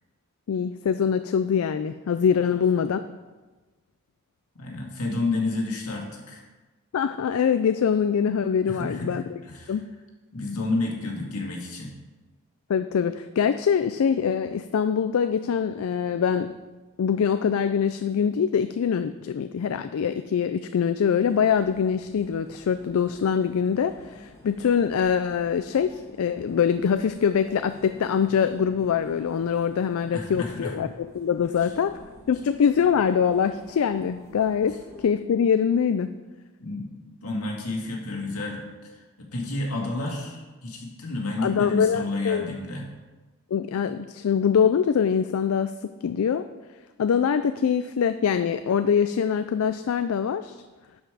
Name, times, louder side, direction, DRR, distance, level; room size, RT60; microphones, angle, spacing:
voice 1, 0.5-3.0 6.9-9.2 9.7-9.8 12.7-16.5 17.0-32.0 32.3-36.1 41.4-42.5 43.5-45.7 46.0-46.5 47.0-50.6, left 7 dB, 70° left, 10 dB, 0.3 m, -24 dB
voice 2, 4.6-6.4 8.7-9.7 10.3-11.9 30.1-30.7 36.6-36.9 37.2-42.9, left 2 dB, 85° left, -1 dB, 2.0 m, -30 dB
sound 1, 21.2-35.1, left 2 dB, 15° left, 1.4 m, -49 dB
11.5 x 5.2 x 4.9 m, 1.2 s
head